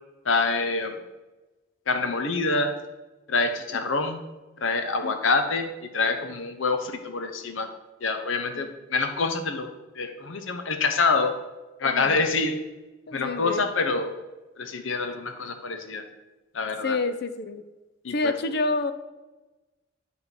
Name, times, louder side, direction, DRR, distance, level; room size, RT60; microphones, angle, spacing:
voice 1, 0.2-1.0 1.9-2.8 3.3-4.2 4.6-7.7 8.0-9.7 9.9-11.4 11.8-12.6 13.1-14.1 14.6-16.0 16.5-17.0 18.0-18.3, left 3 dB, 75° left, 7 dB, 0.9 m, -26 dB
voice 2, 11.8-12.2 13.1-13.6 16.8-17.6 18.1-18.9, left 3 dB, 55° left, 11 dB, 0.5 m, -28 dB
9.5 x 3.6 x 6.2 m, 1.1 s
head